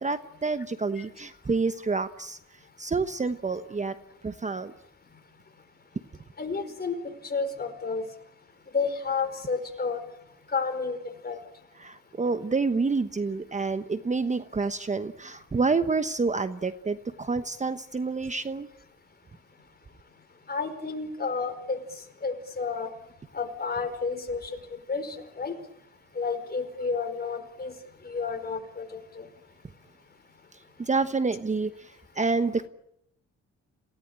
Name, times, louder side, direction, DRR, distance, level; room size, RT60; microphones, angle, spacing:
voice 1, 0.0-2.4 2.8-3.9 4.2-4.7 11.8-18.7 30.8-32.7, right 4 dB, 25° right, 11 dB, 1.1 m, -28 dB
voice 2, 6.4-7.0 7.3-8.0 8.7-10.0 10.5-11.0 11.2-11.4 20.5-21.8 22.2-22.9 23.3-24.4 24.9-25.5 26.1-27.7 28.0-28.8 29.2-29.3, left 4 dB, 30° left, 7 dB, 5.0 m, -30 dB
28.5 x 17.5 x 8.8 m, 0.78 s
cardioid pair, 90°, 30 cm